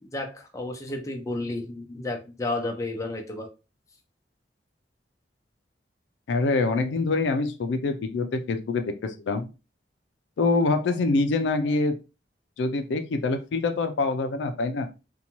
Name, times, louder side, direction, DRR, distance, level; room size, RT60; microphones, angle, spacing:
voice 1, 0.0-3.5, left 2 dB, 20° left, 1 dB, 0.6 m, -32 dB
voice 2, 6.3-9.5 10.4-12.0 12.6-14.9, left 3 dB, 90° left, 7 dB, 0.4 m, -25 dB
2.7 x 2.2 x 2.9 m, 0.29 s
head